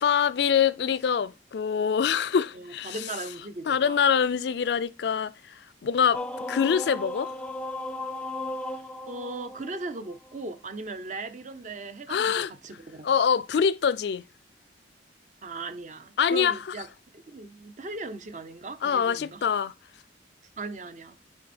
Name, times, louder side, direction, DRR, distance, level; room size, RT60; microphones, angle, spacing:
voice 1, 0.0-3.0 3.7-6.2 6.5-7.3 12.1-12.5 13.0-14.2 16.2-16.6 18.8-19.7, left 7 dB, 65° left, 0.4 m, -24 dB
voice 2, 2.5-4.0 9.1-13.1 15.4-16.9 17.1-19.4 20.6-21.2, right 3 dB, 45° right, 0.7 m, -38 dB
sound 1, 6.1-10.4, left 1 dB, 5° left, 0.5 m, -36 dB
9.5 x 3.5 x 4.2 m
head